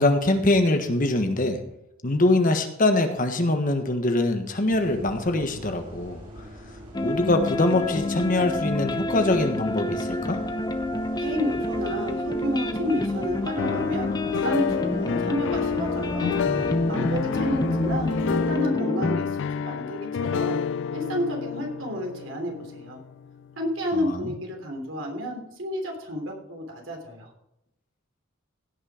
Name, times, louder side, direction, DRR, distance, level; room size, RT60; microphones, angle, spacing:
voice 1, 0.0-1.6 2.0-6.2 7.0-10.4 24.2-24.3, left 2 dB, 45° left, 6 dB, 1.4 m, -23 dB
sound 1, 4.7-18.5, equal, 40° right, 3.7 m, -43 dB
sound 2, 6.9-19.2, left 1 dB, 20° left, 0.8 m, -28 dB
voice 2, 11.2-16.3 16.9-20.6 20.9-23.0 23.6-27.3, equal, 75° right, 2 dB, 3.4 m, -31 dB
sound 3, 13.6-23.5, left 6 dB, 65° left, 0.3 m, -29 dB
16.5 x 6.5 x 5.0 m, 0.82 s
head